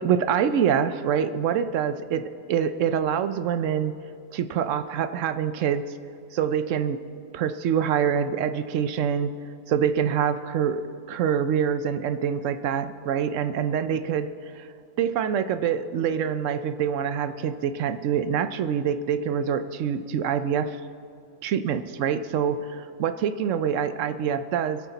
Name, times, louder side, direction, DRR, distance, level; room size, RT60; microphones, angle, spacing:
voice 1, 0.0-4.0 4.3-5.9 6.3-7.0 7.3-9.3 9.7-10.8 11.1-14.3 14.6-14.7 15.0-20.8 21.4-24.8, right 8 dB, 70° right, 11 dB, 0.9 m, -25 dB
23.0 x 8.4 x 4.0 m, 2.4 s
omnidirectional pair, 1.4 m